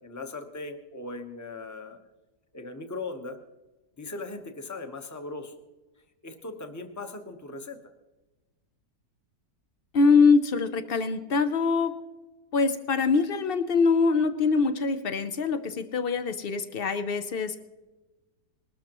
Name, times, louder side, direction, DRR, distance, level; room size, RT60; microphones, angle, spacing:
voice 1, 0.0-2.0 2.5-3.4 4.0-5.5 6.2-7.9, left 3 dB, 15° left, 6 dB, 0.7 m, -38 dB
voice 2, 9.9-11.9 12.5-17.6, left 4 dB, 80° left, 10 dB, 0.5 m, -23 dB
20.5 x 13.0 x 3.0 m, 1.2 s
omnidirectional pair, 1.8 m